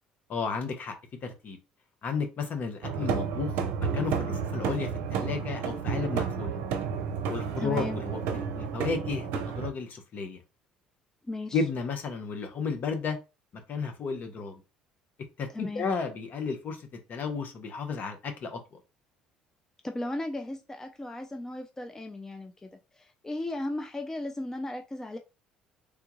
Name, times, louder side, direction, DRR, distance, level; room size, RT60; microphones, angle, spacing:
voice 1, 0.3-0.9 1.2-1.6 2.0-3.6 3.9-6.6 7.3-10.4 11.5-13.2 13.7-14.6 15.4-16.8 17.1-18.6, left 5 dB, 50° left, 6 dB, 0.9 m, -33 dB
sound 1, 2.8-9.7, right 6 dB, 75° right, 0.6 m, -31 dB
voice 2, 7.6-8.0 11.3-11.6 15.5-15.9 19.8-25.2, left 1 dB, 15° left, 5 dB, 0.4 m, -36 dB
3.5 x 2.3 x 3.0 m, 0.28 s
supercardioid pair, 70°, 4 cm